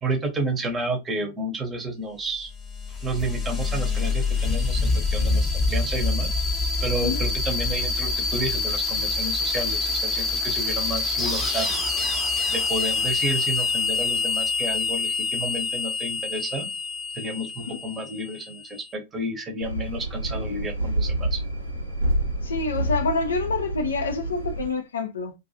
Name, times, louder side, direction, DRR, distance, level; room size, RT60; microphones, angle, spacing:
voice 1, 0.0-2.5 3.0-6.4 6.8-11.7 12.5-16.7 17.1-21.4, right 2 dB, 20° right, 0.8 m, -31 dB
sound 1, 2.4-18.7, left 3 dB, 20° left, 0.8 m, -26 dB
sound 2, 19.6-24.7, right 1 dB, 90° right, 0.9 m, -28 dB
voice 2, 22.4-25.3, left 4 dB, 70° left, 0.4 m, -27 dB
2.4 x 2.3 x 2.6 m
figure-of-eight pair, 90°, 0 cm